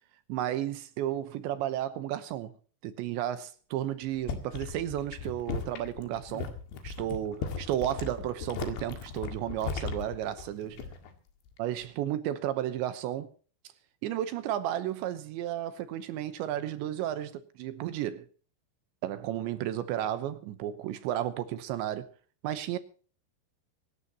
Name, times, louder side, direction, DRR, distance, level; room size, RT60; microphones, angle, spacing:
voice 1, 0.3-2.5 2.8-6.5 6.8-10.9 11.6-13.3 14.0-18.3 19.0-22.1 22.4-22.8, right 12 dB, 75° right, 3.1 m, -33 dB
Drinking Beer, 4.0-11.2 11.5-11.8, left 5 dB, 70° left, 4.1 m, -38 dB
24.5 x 12.5 x 2.9 m
omnidirectional pair, 5.5 m